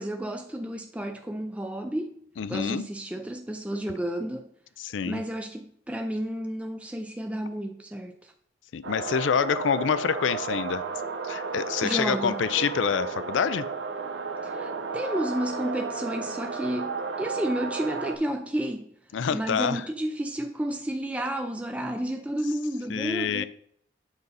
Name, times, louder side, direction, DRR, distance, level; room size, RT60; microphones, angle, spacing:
voice 1, 0.0-2.1 2.5-4.5 5.1-8.3 11.8-12.4 14.4-18.9 19.3-23.4, right 1 dB, 5° right, 5 dB, 0.3 m, -31 dB
voice 2, 2.4-2.9 4.8-5.2 8.7-10.8 11.2-13.7 19.1-19.8 22.9-23.4, left 7 dB, 85° left, 16 dB, 0.4 m, -27 dB
sound 1, 8.8-18.2, right 4 dB, 80° right, 0.9 m, -33 dB
7.9 x 5.1 x 4.0 m, 0.66 s
head